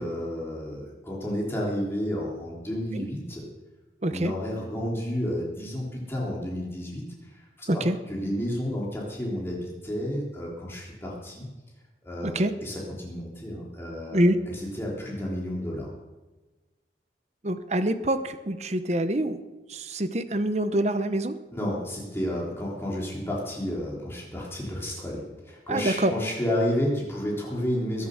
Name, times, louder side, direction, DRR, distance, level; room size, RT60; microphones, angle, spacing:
voice 1, 0.0-3.4 4.1-11.5 12.0-14.2 14.5-15.9 21.5-28.1, equal, 15° left, -4 dB, 3.4 m, -31 dB
voice 2, 4.0-4.3 7.7-8.0 12.2-12.5 14.1-14.4 17.4-19.4 19.7-21.4 25.7-26.1, right 1 dB, 40° right, 11 dB, 1.0 m, -25 dB
21.5 x 8.0 x 6.5 m, 1.2 s
head